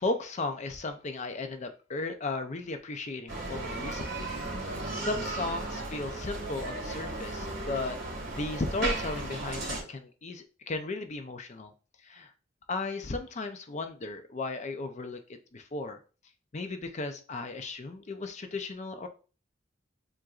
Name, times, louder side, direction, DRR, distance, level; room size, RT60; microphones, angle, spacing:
voice 1, 0.0-4.4 4.6-11.7 12.0-12.3 12.7-16.0 16.5-19.1, left 3 dB, 40° left, 8 dB, 0.5 m, -35 dB
Bicycle, 3.3-9.8, right 2 dB, 55° right, 2.2 m, -35 dB
7.5 x 2.6 x 2.4 m, 0.36 s
head